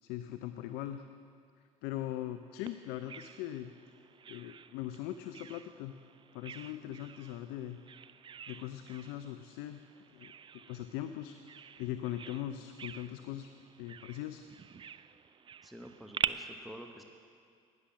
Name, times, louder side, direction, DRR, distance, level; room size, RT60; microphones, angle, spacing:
voice 1, 0.0-1.0 1.8-3.7 4.3-6.0 6.3-7.8 8.5-9.8 10.1-10.3 10.7-11.4 11.8-13.5 13.8-14.4, left 12 dB, 65° left, 9 dB, 0.5 m, -40 dB
Bird vocalization bird call bird song, 2.7-16.3, right 7 dB, 30° right, 0.4 m, -45 dB
voice 2, 15.6-17.0, equal, ahead, 4 dB, 0.8 m, -49 dB
12.0 x 9.6 x 6.0 m, 2.3 s
figure-of-eight pair, 50°, 18 cm